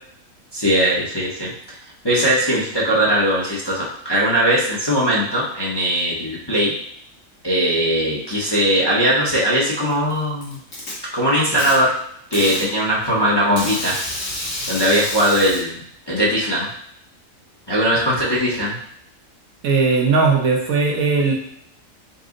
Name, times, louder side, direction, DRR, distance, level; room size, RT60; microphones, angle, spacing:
voice 1, 0.5-1.5 2.0-6.7 7.4-10.6 11.1-11.9 12.3-13.9 14.7-15.8 16.1-16.7 17.7-18.8, equal, 25° left, -6 dB, 0.7 m, -19 dB
Packing tape duct tape, 9.9-10.9 11.6-11.7 12.3-12.7 13.6-15.6, left 1 dB, 65° left, 1.8 m, -28 dB
voice 2, 19.6-21.3, right 4 dB, 75° right, -1 dB, 1.3 m, -18 dB
5.3 x 2.0 x 3.7 m, 0.69 s
omnidirectional pair, 1.5 m